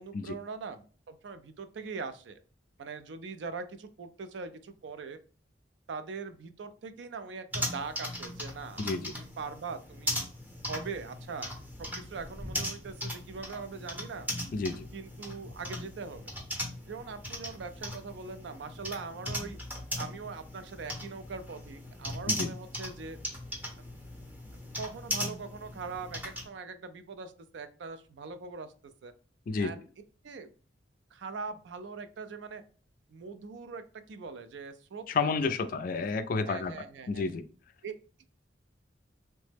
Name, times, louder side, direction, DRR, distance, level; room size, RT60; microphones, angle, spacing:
voice 1, 0.0-2.4 2.8-5.2 5.9-10.3 10.7-11.5 11.8-14.3 14.9-16.3 16.9-19.6 20.0-23.2 24.8-28.7 29.0-29.1 29.6-29.9 30.2-30.5 31.1-32.6 33.1-35.5 36.5-37.3 37.8-38.2, right 4 dB, 75° right, 10 dB, 0.4 m, -42 dB
sound 1, 7.5-26.5, equal, 10° right, 0.6 m, -38 dB
voice 2, 8.8-9.1 14.5-14.9 22.3-22.5 29.5-29.7 35.1-36.7 37.1-37.4, left 4 dB, 50° left, 11 dB, 0.3 m, -30 dB
3.1 x 2.0 x 3.3 m, 0.40 s
head